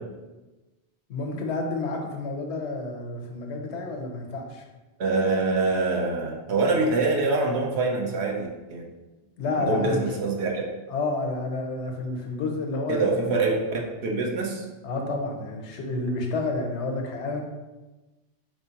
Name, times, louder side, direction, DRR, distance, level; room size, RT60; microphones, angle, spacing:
voice 1, 1.1-4.6 9.4-10.0 10.9-13.3 14.8-17.4, left 3 dB, 80° left, 2 dB, 1.0 m, -30 dB
voice 2, 5.0-8.8 9.5-10.7 12.9-14.7, right 3 dB, 70° right, 0 dB, 1.0 m, -25 dB
4.3 x 3.2 x 2.8 m, 1.1 s
omnidirectional pair, 1.1 m